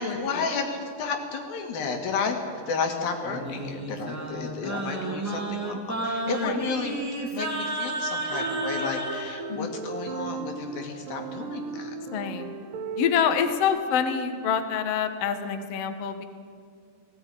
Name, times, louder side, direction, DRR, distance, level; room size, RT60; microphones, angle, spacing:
voice 1, 0.0-2.4 2.7-7.0 7.3-12.0, left 4 dB, 80° left, 4 dB, 3.9 m, -32 dB
Singing, 3.2-9.3, right 2 dB, 5° right, 2.0 m, -32 dB
sound 1, 8.3-13.6, right 4 dB, 70° right, 2.8 m, -36 dB
voice 2, 12.1-12.5 13.0-16.2, left 7 dB, 60° left, 7 dB, 1.8 m, -26 dB
17.0 x 16.5 x 9.9 m, 2.2 s
omnidirectional pair, 4.2 m